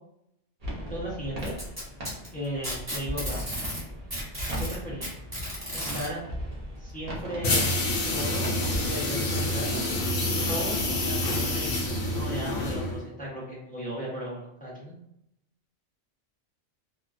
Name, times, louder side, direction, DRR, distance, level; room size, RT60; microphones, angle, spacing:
sound 1, 0.6-8.9, equal, 45° right, 0.6 m, -38 dB
voice 1, 0.9-1.5 2.3-3.4 4.6-5.1 5.7-6.2 6.8-7.7 8.1-9.8 10.5-11.7 12.1-15.0, equal, 15° left, -6 dB, 0.3 m, -36 dB
Packing tape duct tape, 1.4-3.8 4.1-6.1 7.2-7.3 7.8-7.9 8.8-8.9, equal, 15° right, 1.1 m, -34 dB
sound 2, 7.4-13.1, left 1 dB, 85° left, 1.0 m, -27 dB
2.4 x 2.1 x 2.4 m, 0.77 s
omnidirectional pair, 1.3 m